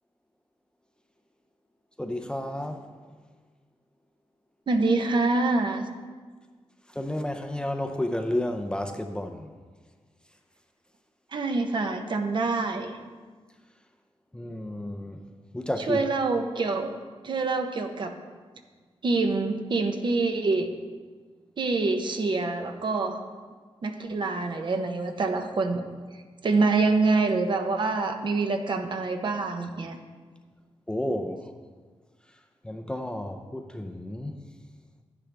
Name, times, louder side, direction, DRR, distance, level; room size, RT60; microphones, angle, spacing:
voice 1, 2.0-2.9 6.9-9.5 14.3-16.0 30.9-31.5 32.6-34.4, left 1 dB, 10° left, 4 dB, 0.5 m, -31 dB
voice 2, 4.7-5.8 11.3-13.0 15.9-16.9 17.2-18.1 19.0-20.7 21.6-23.2 23.8-25.8 26.4-30.0, right 3 dB, 50° right, 5 dB, 0.8 m, -26 dB
10.5 x 10.0 x 3.4 m, 1.5 s
wide cardioid pair, 155°, 10 cm